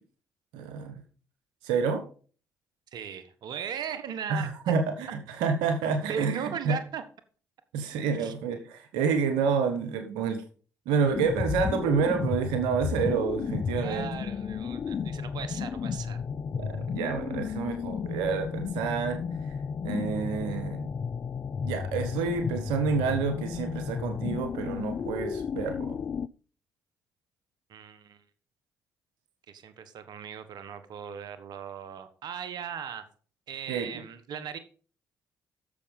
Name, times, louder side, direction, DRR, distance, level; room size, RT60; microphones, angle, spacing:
voice 1, 0.5-1.0 1.6-2.0 4.3-6.8 7.7-10.4 10.9-14.1 16.5-19.2 19.8-20.9 21.6-26.0 33.7-33.9, right 5 dB, 90° right, 7 dB, 1.3 m, -28 dB
voice 2, 2.9-4.7 6.1-7.0 8.1-8.3 13.8-16.2 27.7-28.2 29.5-33.0 33.5-34.6, right 7 dB, 70° right, 11 dB, 1.4 m, -38 dB
sound 1, 11.1-26.3, left 6 dB, 45° left, 0.5 m, -33 dB
10.5 x 7.0 x 5.3 m, 0.40 s
supercardioid pair, 55°, 7 cm